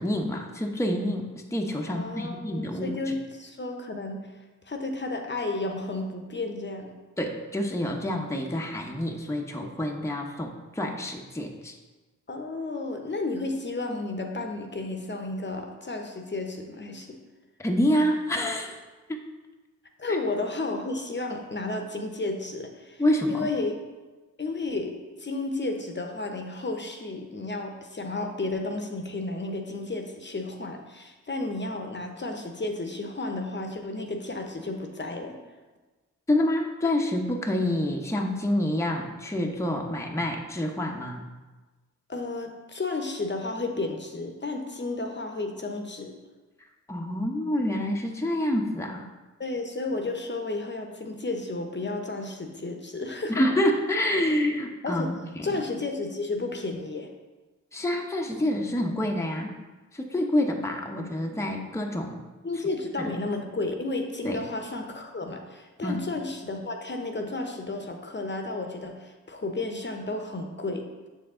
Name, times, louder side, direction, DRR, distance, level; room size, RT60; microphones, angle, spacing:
voice 1, 0.0-3.0 7.2-11.7 17.6-18.8 19.1-19.2 20.1-20.2 23.0-23.5 36.3-41.2 46.9-49.1 53.3-55.6 57.7-59.6 59.9-62.2 63.0-63.1 64.2-64.4 65.8-66.0, left 1 dB, 10° left, 2 dB, 0.8 m, -27 dB
voice 2, 1.9-4.3 4.7-6.9 12.3-17.2 20.0-23.0 23.3-23.8 24.4-35.4 42.1-46.1 49.4-53.4 54.8-55.1 55.4-57.1 62.4-70.9, left 2 dB, 35° left, 4 dB, 0.9 m, -32 dB
6.6 x 4.6 x 3.7 m, 1.2 s
supercardioid pair, 40°, 33 cm